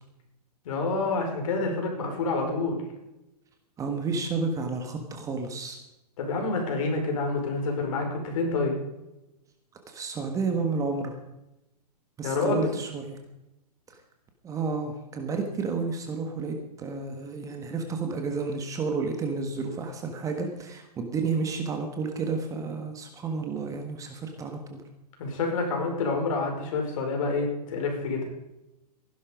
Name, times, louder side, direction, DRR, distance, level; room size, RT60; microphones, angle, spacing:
voice 1, 0.6-2.8 6.2-8.8 12.2-12.6 25.2-28.2, left 3 dB, 55° left, 2 dB, 5.1 m, -28 dB
voice 2, 3.8-5.8 9.9-11.1 12.2-13.2 13.9-14.0 14.4-24.8, right 4 dB, 15° right, 4 dB, 1.6 m, -31 dB
15.5 x 11.0 x 5.2 m, 0.93 s
hypercardioid pair, 140°, 21 cm